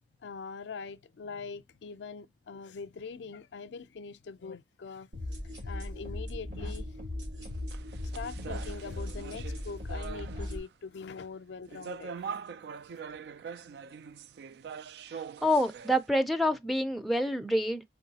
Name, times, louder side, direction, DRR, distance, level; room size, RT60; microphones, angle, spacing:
voice 1, 0.2-5.1 5.4-6.9 8.1-12.1, left 5 dB, 80° left, 0.4 m, -43 dB
sound 1, 5.1-10.6, left 1 dB, 80° right, 2.3 m, -38 dB
sound 2, 7.4-10.7 11.7-16.0, right 6 dB, 65° right, 0.3 m, -43 dB
voice 2, 15.4-17.8, equal, ahead, 0.4 m, -27 dB
4.6 x 3.1 x 2.7 m
head